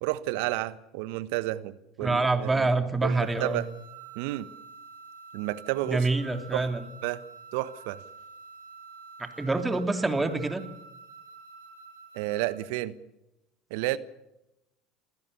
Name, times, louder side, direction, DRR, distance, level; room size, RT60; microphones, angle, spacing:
voice 1, 0.0-2.7 3.0-3.7 4.1-4.5 5.3-6.1 6.5-6.7 7.0-7.2 7.5-8.0 12.1-12.9 13.7-14.0, right 16 dB, 70° right, 15 dB, 1.2 m, -31 dB
voice 2, 2.0-3.6 5.8-6.9 9.2-10.7, right 3 dB, 15° right, 7 dB, 3.1 m, -26 dB
sound 1, 3.1-12.7, right 5 dB, 85° right, 4.1 m, -48 dB
27.5 x 16.5 x 6.9 m, 0.91 s
hypercardioid pair, 75°, 0 cm